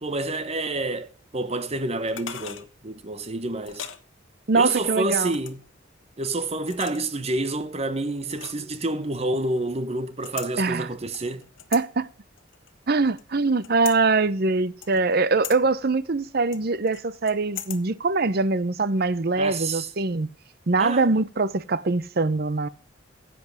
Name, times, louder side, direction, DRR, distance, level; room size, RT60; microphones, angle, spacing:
voice 1, 0.0-3.9 4.5-5.6 6.2-11.4 19.4-19.9 20.8-21.1, right 2 dB, 35° right, 1.1 m, -28 dB
sound 1, 2.1-2.7 3.6-4.0 5.2-5.7 6.6-7.2 8.3-8.7 10.2-10.5 11.1-11.8 12.4-13.2 13.6-14.0 14.8-15.1 15.4-15.6 16.5-17.8 18.1-18.2, left 10 dB, 85° left, 1.2 m, -38 dB
voice 2, 4.5-5.4 10.6-10.9 11.7-12.1 12.9-20.3 20.7-22.7, right 3 dB, 55° right, 0.7 m, -23 dB
10.5 x 7.9 x 7.8 m
head